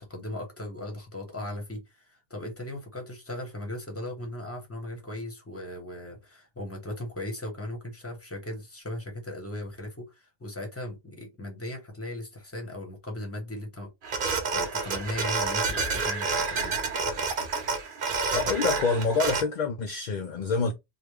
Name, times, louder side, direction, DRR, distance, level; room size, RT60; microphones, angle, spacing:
voice 1, 0.0-13.9 14.5-16.8, left 1 dB, 15° left, 1.0 m, -37 dB
sound 1, 14.0-19.4, right 4 dB, 55° right, 0.9 m, -29 dB
voice 2, 18.3-20.7, left 4 dB, 55° left, 0.5 m, -26 dB
3.5 x 2.4 x 3.1 m
omnidirectional pair, 1.1 m